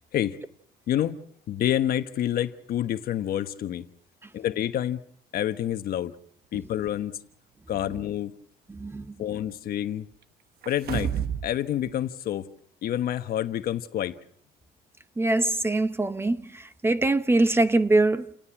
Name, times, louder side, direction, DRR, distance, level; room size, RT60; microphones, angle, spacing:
voice 1, 0.9-1.2 1.5-3.9 4.3-5.0 5.3-6.1 6.5-7.2 7.7-8.3 9.2-10.1 10.7-11.1 11.4-12.5 12.8-14.2, left 11 dB, 60° left, 1.3 m, -28 dB
voice 2, 8.7-9.1 15.2-18.3, right 2 dB, 15° right, 0.8 m, -23 dB
sound 1, 10.6-11.5 11.9-12.0, right 9 dB, 65° right, 1.1 m, -29 dB
29.5 x 18.0 x 5.9 m
cardioid pair, 110°, 17 cm